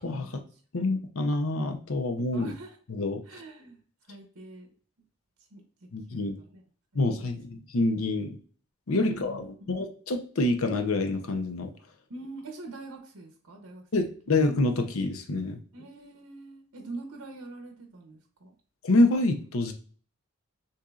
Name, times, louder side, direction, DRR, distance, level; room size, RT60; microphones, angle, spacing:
voice 1, 0.0-0.4 0.7-2.5 2.9-3.2 5.9-6.3 6.9-8.4 8.9-11.7 13.9-15.6 18.8-19.7, left 2 dB, 75° left, 5 dB, 0.7 m, -27 dB
voice 2, 2.3-2.8 3.2-3.8 4.0-4.7 5.5-6.6 6.9-7.3 8.9-9.7 12.1-14.3 15.7-18.5, right 2 dB, 90° right, 4 dB, 0.9 m, -44 dB
6.5 x 2.7 x 2.4 m, 0.43 s
head